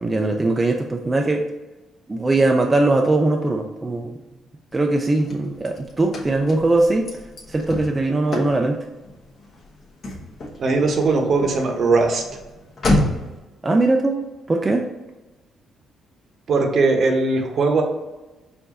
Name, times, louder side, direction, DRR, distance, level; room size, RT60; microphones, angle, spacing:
voice 1, 0.0-1.4 2.1-4.1 4.7-7.1 7.5-8.8 13.6-14.2 14.5-14.8, right 2 dB, 25° right, 2 dB, 0.4 m, -20 dB
Car / Slam, 4.7-13.4, left 1 dB, 45° left, 1.2 m, -29 dB
voice 2, 10.6-12.2 16.5-17.8, right 3 dB, 55° right, 3 dB, 0.8 m, -19 dB
4.7 x 2.5 x 4.0 m, 1.1 s
cardioid pair, 90°, 0 cm